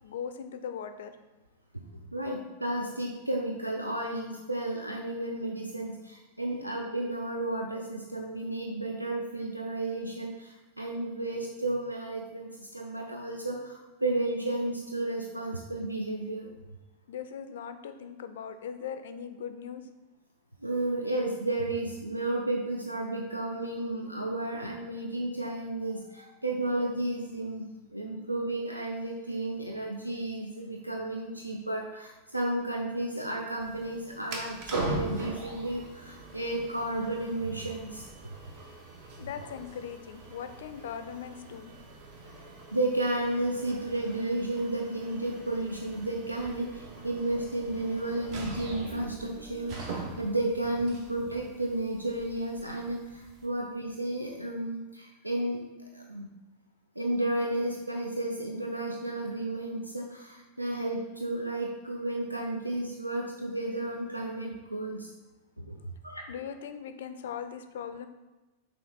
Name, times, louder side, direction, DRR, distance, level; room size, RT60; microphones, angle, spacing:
voice 1, 0.0-1.1 17.1-19.8 39.2-41.7 66.3-68.1, left 8 dB, 60° left, 9 dB, 0.3 m, -39 dB
voice 2, 2.1-16.5 20.6-27.7 27.9-38.1 42.7-55.6 55.9-56.3 57.0-65.1 65.7-65.8 66.0-66.2, right 1 dB, 85° right, 1 dB, 0.3 m, -32 dB
sound 1, 33.6-53.5, right 2 dB, 40° right, 0.7 m, -42 dB
5.7 x 2.4 x 3.8 m, 1.1 s
figure-of-eight pair, 90°, 0 cm